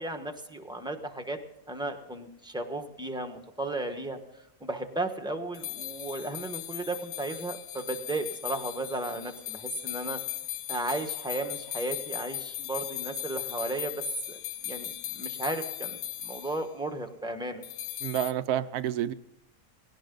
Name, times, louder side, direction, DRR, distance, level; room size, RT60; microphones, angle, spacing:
voice 1, 0.0-1.4 1.7-4.2 4.6-10.2 10.7-17.6, right 2 dB, 5° right, 5 dB, 1.3 m, -35 dB
sound 1, 5.5-16.6 17.6-18.3, left 12 dB, 75° left, 1.2 m, -38 dB
voice 2, 18.0-19.1, right 11 dB, 85° right, 14 dB, 1.3 m, -29 dB
19.5 x 17.5 x 3.9 m, 0.87 s
omnidirectional pair, 1.6 m